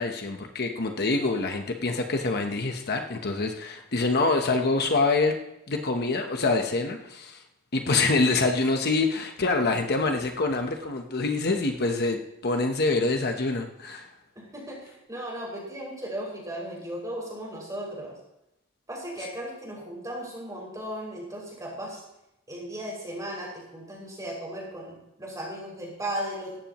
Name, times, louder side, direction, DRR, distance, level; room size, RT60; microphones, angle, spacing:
voice 1, 0.0-5.4 5.7-7.4 7.7-14.1, left 3 dB, 50° left, 4 dB, 1.1 m, -26 dB
voice 2, 14.4-18.2 18.9-22.0 22.5-26.6, right 1 dB, 15° right, -3 dB, 6.1 m, -36 dB
17.5 x 14.5 x 3.1 m, 0.86 s
head